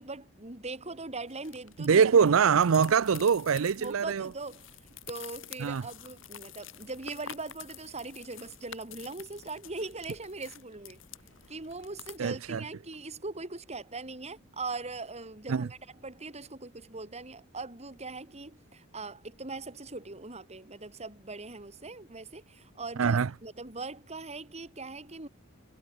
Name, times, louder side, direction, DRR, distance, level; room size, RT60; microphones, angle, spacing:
voice 1, 0.0-2.1 3.8-4.7 5.1-11.0 11.5-25.3, right 3 dB, 30° right, 3.1 m, -41 dB
sound 1, 1.3-12.2, left 9 dB, 65° left, 4.9 m, -49 dB
voice 2, 1.8-4.3 5.6-5.8 12.2-12.6 15.5-15.7 23.0-23.3, right 6 dB, 80° right, 0.5 m, -23 dB
head